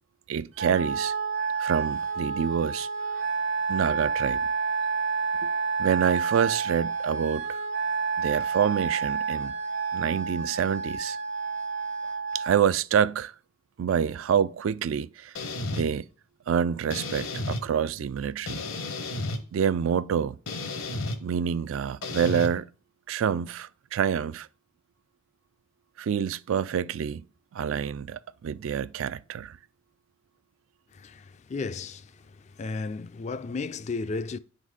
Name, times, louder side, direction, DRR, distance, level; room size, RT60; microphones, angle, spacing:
voice 1, 0.3-1.1 1.6-2.9 3.7-4.5 5.4-5.5 5.8-7.4 8.2-9.5 9.9-11.2 12.3-13.3 13.8-15.3 15.7-16.1 16.5-18.6 19.5-20.4 21.2-22.6 23.1-24.5 26.0-27.2 27.5-29.6, right 8 dB, 75° right, 0.3 m, -27 dB
Wind instrument woodwind instrument, 0.6-12.6, right 5 dB, 60° right, 1.0 m, -29 dB
sound 1, 15.4-15.8 16.9-17.6 18.5-19.4 20.5-21.2 22.0-22.5, left 2 dB, 80° left, 1.0 m, -32 dB
voice 2, 30.9-32.1 32.6-34.4, left 4 dB, 35° left, 0.3 m, -33 dB
9.3 x 4.0 x 4.8 m
head